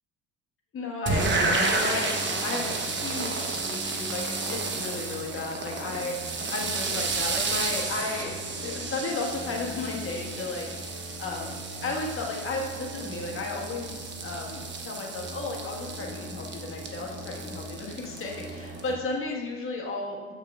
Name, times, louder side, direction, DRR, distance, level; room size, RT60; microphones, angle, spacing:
voice 1, 0.7-20.3, left 3 dB, 40° left, -2 dB, 1.5 m, -34 dB
sound 1, 1.1-18.9, right 3 dB, 35° right, 0.9 m, -32 dB
8.2 x 5.7 x 2.4 m, 1.4 s
supercardioid pair, 85°, 32 cm